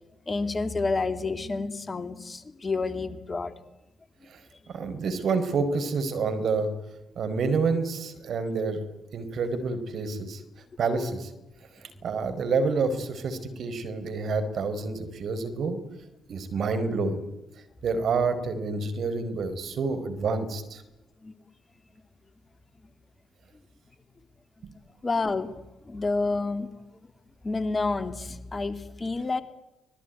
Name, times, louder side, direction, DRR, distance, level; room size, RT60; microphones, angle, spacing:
voice 1, 0.3-3.5 21.2-21.3 25.0-25.6 25.9-26.7 27.4-29.4, left 3 dB, 30° left, 10 dB, 2.7 m, -29 dB
voice 2, 4.7-6.7 7.2-8.8 9.1-10.4 10.8-11.3 12.0-15.8 16.3-17.2 17.8-20.8 24.6-24.7, right 4 dB, 55° right, 10 dB, 4.7 m, -28 dB
25.0 x 21.0 x 9.4 m, 0.98 s
figure-of-eight pair, 40°, 0 cm